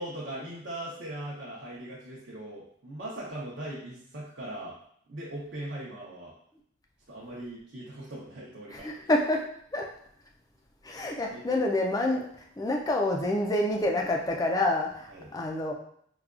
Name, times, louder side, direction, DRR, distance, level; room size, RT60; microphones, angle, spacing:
voice 1, 0.0-4.7 5.1-6.3 7.1-9.0 11.3-11.7 15.1-15.3, right 1 dB, 55° right, -6 dB, 0.6 m, -40 dB
voice 2, 8.7-9.5 9.7-9.9 10.8-12.3 12.6-15.7, left 1 dB, 15° left, 1 dB, 0.3 m, -27 dB
4.8 x 2.2 x 2.4 m, 0.66 s
head